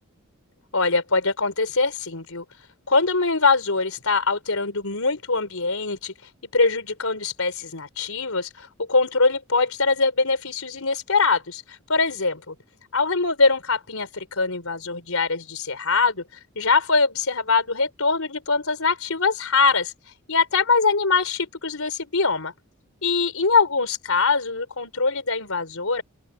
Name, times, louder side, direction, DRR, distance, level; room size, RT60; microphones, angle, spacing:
voice 1, 0.7-2.4 2.9-6.1 6.5-12.5 12.9-16.2 16.6-19.9 20.3-22.5 23.0-26.0, left 4 dB, 75° left, 4.2 m, -23 dB
open air
head